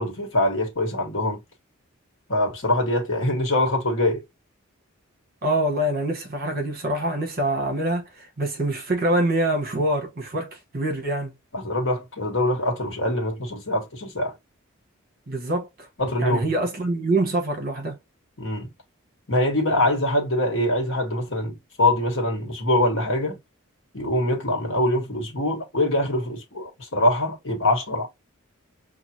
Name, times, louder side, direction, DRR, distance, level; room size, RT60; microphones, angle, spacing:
voice 1, 0.0-1.4 2.3-4.2 11.5-14.3 16.0-16.4 18.4-18.7 19.3-23.4 23.9-28.1, left 1 dB, 60° left, 1.3 m, -23 dB
voice 2, 5.4-11.3 15.3-15.9 16.2-18.0, right 1 dB, 45° right, 1.2 m, -25 dB
5.9 x 2.4 x 2.8 m
head